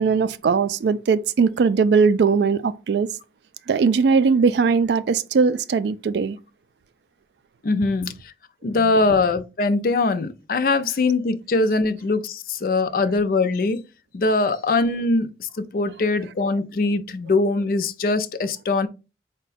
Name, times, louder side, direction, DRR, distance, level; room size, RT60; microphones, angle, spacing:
voice 1, 0.0-3.1 3.7-6.4, right 5 dB, 70° right, 0.3 m, -19 dB
voice 2, 7.6-8.3 8.6-13.8 14.1-18.9, left 3 dB, 50° left, 0.4 m, -22 dB
4.5 x 2.2 x 4.0 m
head